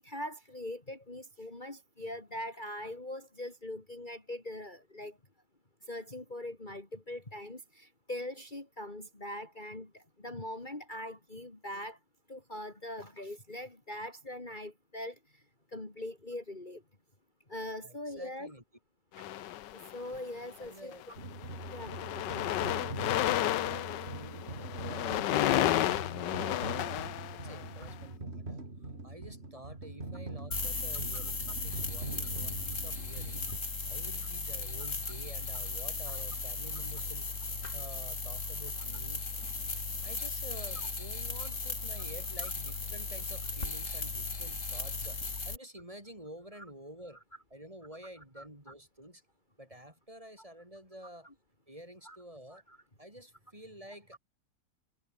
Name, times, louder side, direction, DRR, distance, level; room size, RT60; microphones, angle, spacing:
voice 1, 0.0-5.2 5.8-12.0 12.3-15.4 15.7-16.8 17.5-18.5 19.2-20.9 21.7-22.0 31.1-31.2 48.4-48.5 52.1-52.2 52.5-52.8 54.1-54.2, left 1 dB, 25° left, 3.5 m, -42 dB
voice 2, 17.8-18.6 20.6-21.0 22.6-27.0 27.3-28.6 29.0-33.5 33.9-37.2 37.7-39.2 40.0-45.2 45.4-47.2 47.5-49.2 49.6-51.3 51.7-52.6 53.0-54.2, equal, 15° right, 6.2 m, -50 dB
sound 1, 19.2-20.2 20.9-21.1 21.4-27.9, left 13 dB, 75° left, 1.4 m, -32 dB
sound 2, 21.2-33.6, right 2 dB, 35° right, 4.1 m, -43 dB
sound 3, 30.5-45.6, left 3 dB, 40° left, 3.5 m, -37 dB
omnidirectional pair, 2.0 m